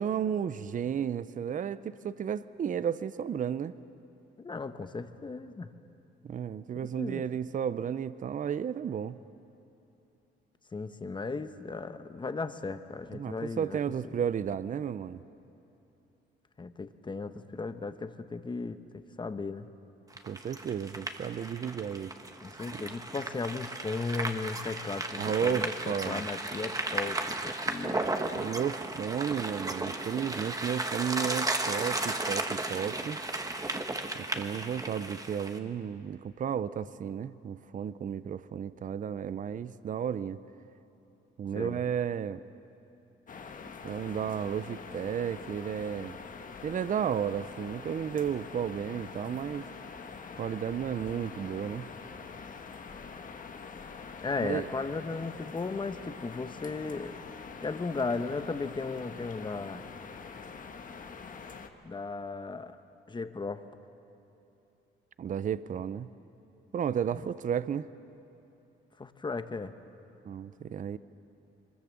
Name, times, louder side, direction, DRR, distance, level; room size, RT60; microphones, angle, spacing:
voice 1, 0.0-3.7 6.2-9.2 13.1-15.2 20.2-22.1 22.7-22.8 25.2-26.2 28.3-33.2 34.1-40.4 41.4-42.4 43.8-46.2 46.6-49.7 50.3-51.9 54.4-54.7 65.2-66.1 66.7-67.9 70.2-71.0, right 8 dB, 40° right, 15 dB, 0.6 m, -33 dB
voice 2, 4.4-5.7 6.8-7.3 10.7-13.8 16.6-19.7 22.4-28.0 41.5-41.8 54.2-57.2 57.6-59.8 61.8-62.8 63.1-63.7 69.0-69.7, left 4 dB, 25° left, 10 dB, 1.0 m, -36 dB
sound 1, 20.1-35.6, right 2 dB, 15° right, 1.5 m, -35 dB
sound 2, 43.3-61.7, left 5 dB, 40° left, 1.4 m, -45 dB
23.5 x 21.0 x 7.5 m, 2.9 s
cardioid pair, 90°, 20 cm